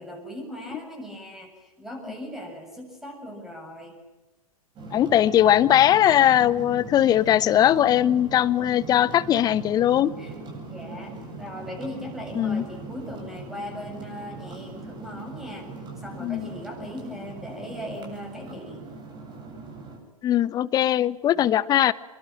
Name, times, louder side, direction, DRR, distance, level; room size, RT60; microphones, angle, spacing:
voice 1, 0.0-4.0 10.2-11.1 11.4-15.7 16.0-18.9 21.3-21.5, equal, ahead, 3 dB, 7.4 m, -39 dB
sound 1, 4.8-20.0, right 3 dB, 25° right, 7.9 m, -40 dB
voice 2, 4.9-10.1 12.3-12.6 16.2-16.5 20.2-21.9, left 11 dB, 20° left, 20 dB, 0.9 m, -20 dB
26.5 x 22.5 x 8.8 m, 1.0 s
figure-of-eight pair, 105°, 18 cm